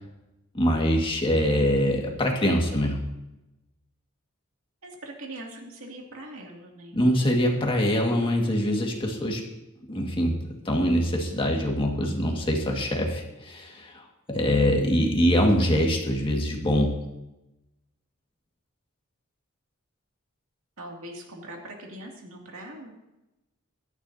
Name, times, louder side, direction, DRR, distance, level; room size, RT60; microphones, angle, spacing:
voice 1, 0.5-3.0 6.9-9.4 9.9-17.0, equal, 25° left, 1 dB, 1.9 m, -24 dB
voice 2, 4.8-7.0 20.8-22.9, right 1 dB, 70° right, 0 dB, 2.5 m, -41 dB
16.0 x 12.5 x 2.8 m, 0.96 s
head